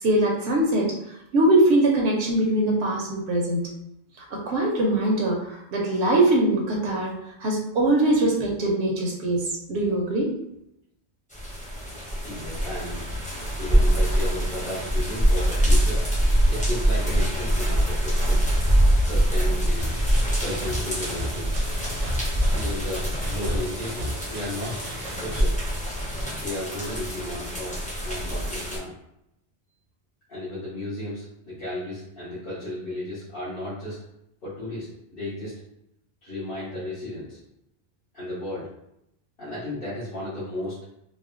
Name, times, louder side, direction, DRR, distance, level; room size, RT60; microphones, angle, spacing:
voice 1, 0.0-0.9 1.3-3.6 4.3-7.1 7.4-10.3, right 1 dB, 80° right, -2 dB, 0.9 m, -22 dB
sound 1, 11.3-28.8, equal, 10° left, 0.6 m, -24 dB
voice 2, 12.2-13.1 13.6-16.0 16.5-18.4 19.0-20.0 20.4-21.5 22.5-24.7 25.1-25.6 26.4-27.8 28.0-28.9 30.3-34.0 34.4-35.5 36.2-37.4 38.1-38.7 39.4-40.8, left 1 dB, 55° left, -15 dB, 1.7 m, -34 dB
sound 2, 19.8-25.4, equal, 45° right, 0.6 m, -35 dB
4.1 x 2.1 x 2.4 m, 0.81 s
omnidirectional pair, 1.1 m